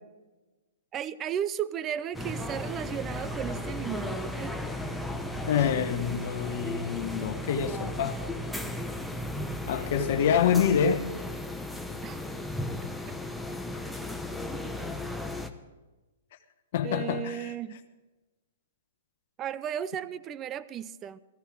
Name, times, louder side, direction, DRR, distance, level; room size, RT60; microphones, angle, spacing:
voice 1, 0.9-4.6 9.7-9.9 12.0-12.2 16.8-17.8 19.4-21.2, right 9 dB, 25° right, 17 dB, 0.6 m, -35 dB
sound 1, 2.1-15.5, left 1 dB, ahead, 1.0 m, -35 dB
voice 2, 5.5-8.3 9.7-11.1 16.7-17.5, left 8 dB, 55° left, 8 dB, 1.1 m, -26 dB
Guitar, 5.5-8.3, right 4 dB, 50° right, 4.2 m, -46 dB
15.5 x 14.0 x 4.9 m, 1.2 s
hypercardioid pair, 125°, 0 cm